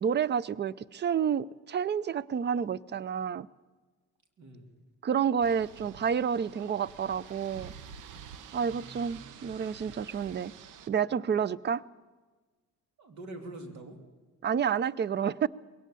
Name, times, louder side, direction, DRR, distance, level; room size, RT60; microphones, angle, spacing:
voice 1, 0.0-3.5 5.0-7.7 8.5-10.5 10.9-11.8 14.4-15.5, right 7 dB, 35° right, 0.5 m, -29 dB
voice 2, 4.4-4.7 8.5-9.5 13.0-14.0, right 1 dB, 70° right, 2.8 m, -46 dB
sound 1, 5.4-10.9, right 7 dB, 90° right, 1.0 m, -49 dB
21.0 x 17.5 x 6.9 m
cardioid pair, 90°, 30 cm